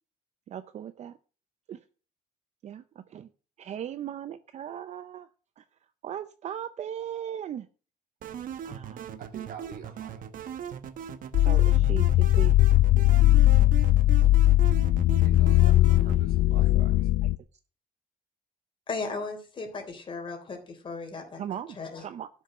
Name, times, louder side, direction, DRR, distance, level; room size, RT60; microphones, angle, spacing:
voice 1, 0.5-1.2 1.7-1.8 2.6-3.3 3.6-5.3 5.6-5.7 6.0-7.7 8.6-9.2 11.4-12.6 21.4-22.3, right 10 dB, 50° right, 0.6 m, -38 dB
sound 1, 8.2-16.2, right 8 dB, 65° right, 1.0 m, -39 dB
voice 2, 9.2-10.2 15.2-17.1, right 7 dB, 80° right, 3.1 m, -46 dB
sound 2, 11.3-17.4, left 15 dB, 90° left, 0.5 m, -20 dB
voice 3, 18.9-21.4 21.8-22.0, left 4 dB, 35° left, 3.5 m, -36 dB
13.0 x 6.3 x 6.6 m
cardioid pair, 155°, 15 cm